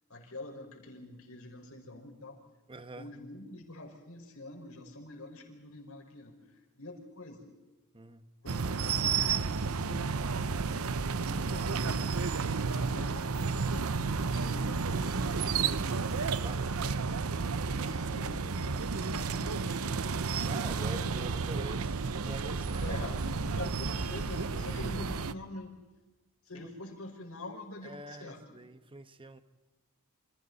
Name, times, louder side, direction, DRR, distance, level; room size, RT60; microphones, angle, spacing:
voice 1, 0.1-2.4 3.0-7.5 8.4-10.4 11.1-12.1 12.7-15.8 16.6-17.1 17.7-20.1 22.8-25.7 26.4-28.6, left 2 dB, 65° left, 5.3 m, -46 dB
voice 2, 2.7-3.1 7.9-8.3 16.3-16.7 20.5-23.0 26.5-26.7 27.8-29.4, right 2 dB, 25° right, 1.2 m, -45 dB
sound 1, 8.5-25.3, right 5 dB, 75° right, 0.8 m, -32 dB
sound 2, 10.4-24.9, equal, 35° left, 6.6 m, -53 dB
29.0 x 27.5 x 4.2 m
head